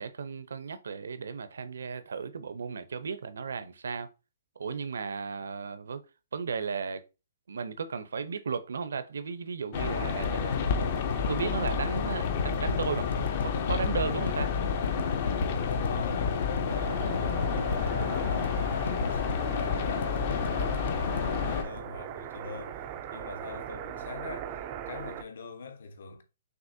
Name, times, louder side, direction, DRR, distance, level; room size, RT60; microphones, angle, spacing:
voice 1, 0.0-4.1 4.6-6.0 6.3-7.0 7.5-10.7 11.0-13.1 13.4-14.5, right 5 dB, 75° right, 0.6 m, -35 dB
sound 1, 9.7-21.6, left 6 dB, 30° left, 0.5 m, -30 dB
sound 2, 10.2-22.6 23.0-23.1, left 4 dB, 90° left, 0.5 m, -35 dB
voice 2, 15.7-26.2, left 4 dB, 60° left, 1.0 m, -43 dB
sound 3, 16.7-25.2, right 10 dB, 20° right, 0.3 m, -40 dB
6.2 x 3.0 x 2.7 m
hypercardioid pair, 175°, 0 cm